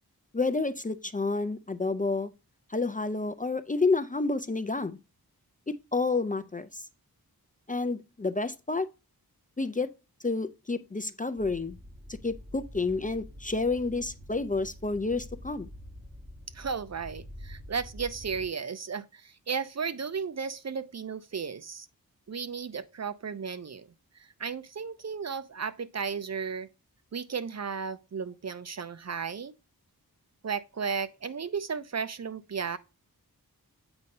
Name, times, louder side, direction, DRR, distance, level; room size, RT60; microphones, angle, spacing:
voice 1, 0.3-2.3 2.7-5.0 5.9-6.8 7.7-8.9 9.6-9.9 10.2-11.8 12.2-15.7, left 3 dB, 20° left, 0.5 m, -29 dB
sound 1, 11.4-18.5, equal, 20° right, 1.6 m, -46 dB
voice 2, 16.5-21.9 22.3-23.9 24.2-26.7 27.1-29.5 30.4-32.8, right 6 dB, 45° right, 0.5 m, -34 dB
7.9 x 2.7 x 5.3 m
wide cardioid pair, 65°, 37 cm